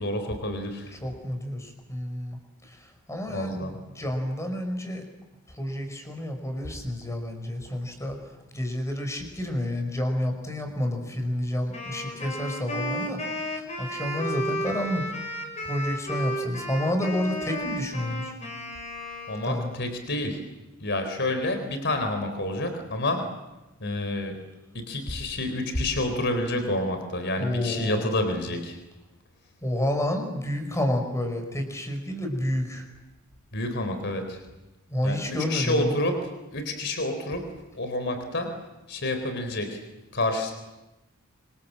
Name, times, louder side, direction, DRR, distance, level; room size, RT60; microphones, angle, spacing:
voice 1, 0.0-1.0 3.3-3.7 19.3-20.4 20.8-23.3 23.8-24.4 24.7-28.8 33.5-34.4 35.0-36.2 36.5-38.5 38.9-39.8 40.1-40.5, left 1 dB, 55° left, 7 dB, 4.1 m, -29 dB
voice 2, 0.9-2.4 2.7-5.1 5.5-8.2 8.5-15.0 15.6-18.3 19.4-19.7 27.4-28.1 29.6-32.9 34.9-35.9, left 1 dB, 15° left, 5 dB, 5.3 m, -30 dB
Wind instrument woodwind instrument, 11.7-19.9, equal, 35° left, 6.0 m, -33 dB
26.5 x 26.0 x 7.6 m, 1.0 s
head